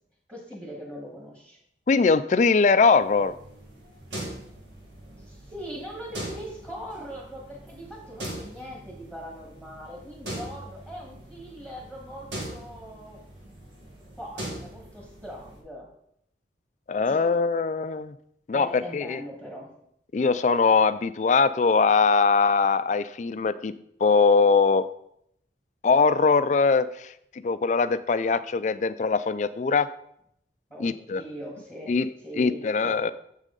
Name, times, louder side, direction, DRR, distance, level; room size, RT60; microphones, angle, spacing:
voice 1, 0.3-1.6 5.1-13.2 14.2-15.9 17.0-17.2 18.5-19.7 30.7-33.0, equal, 15° right, -2 dB, 1.4 m, -41 dB
voice 2, 1.9-3.3 16.9-18.1 18.5-19.2 20.1-23.7 24.0-24.9 25.8-27.1 27.4-29.9 30.8-31.2 31.9-32.1 32.3-33.1, left 4 dB, 40° left, 14 dB, 0.3 m, -21 dB
sound 1, 3.0-15.6, right 1 dB, 90° right, 2.0 m, -41 dB
7.6 x 6.2 x 3.8 m, 0.73 s
head